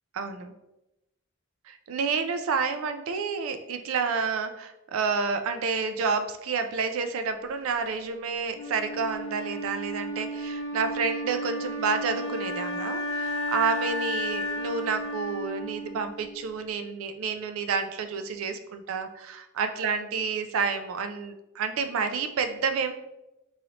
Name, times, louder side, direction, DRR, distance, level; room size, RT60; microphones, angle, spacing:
voice 1, 0.1-0.5 1.7-22.9, right 5 dB, 70° right, 8 dB, 0.3 m, -29 dB
Wind instrument woodwind instrument, 8.5-16.6, equal, 85° left, 0.6 m, -33 dB
3.1 x 2.6 x 2.8 m, 0.93 s
head